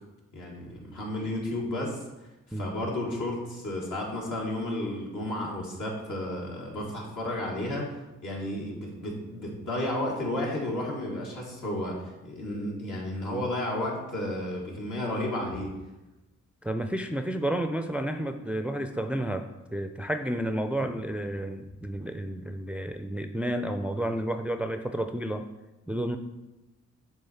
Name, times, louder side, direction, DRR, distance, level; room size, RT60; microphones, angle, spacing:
voice 1, 0.3-2.0 2.6-7.9 8.2-15.7, left 1 dB, 70° left, -2 dB, 1.8 m, -32 dB
voice 2, 16.6-25.4 25.9-26.2, right 1 dB, 5° right, 7 dB, 0.4 m, -31 dB
6.9 x 3.3 x 4.2 m, 1.0 s
supercardioid pair, 55°, 32 cm